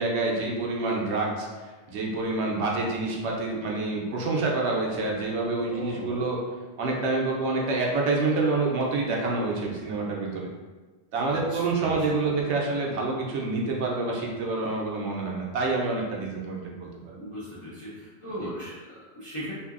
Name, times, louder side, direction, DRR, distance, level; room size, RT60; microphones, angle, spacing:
voice 1, 0.0-6.4 6.8-10.5 11.1-17.2 18.4-18.5, right 3 dB, 75° right, -2 dB, 0.9 m, -27 dB
voice 2, 5.7-6.2 11.2-12.3 17.1-19.5, equal, 40° left, -9 dB, 0.4 m, -39 dB
2.7 x 2.6 x 2.4 m, 1.3 s
omnidirectional pair, 1.2 m